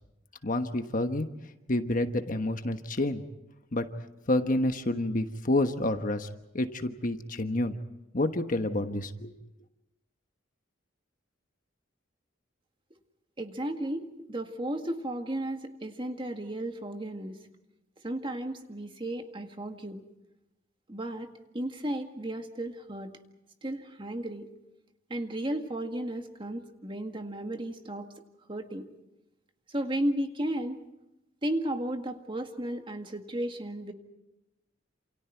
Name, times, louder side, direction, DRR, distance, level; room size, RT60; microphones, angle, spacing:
voice 1, 0.4-1.3 1.7-3.2 3.7-3.9 4.3-6.3 6.5-7.7 8.1-9.3, left 1 dB, 45° left, 7 dB, 1.3 m, -28 dB
voice 2, 13.4-17.4 18.0-20.0 20.9-21.3 21.5-23.1 23.6-24.5 25.1-28.1 28.5-28.9 29.7-30.8 31.4-33.9, right 1 dB, 25° right, 5 dB, 1.9 m, -34 dB
29.0 x 28.0 x 4.6 m, 0.90 s
head